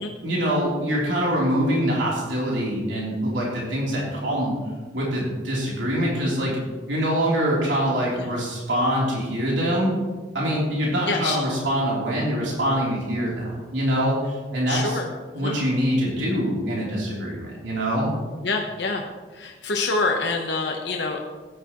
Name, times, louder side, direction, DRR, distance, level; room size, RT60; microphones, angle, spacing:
voice 1, 0.2-4.5 4.9-6.6 6.9-9.9 10.3-15.0 15.4-18.1, equal, 85° right, -4 dB, 3.6 m, -24 dB
voice 2, 11.1-11.4 14.7-15.1 15.3-15.6 18.4-19.1 19.3-21.2, left 3 dB, 75° left, 1 dB, 1.1 m, -26 dB
14.5 x 11.0 x 3.1 m, 1.3 s
head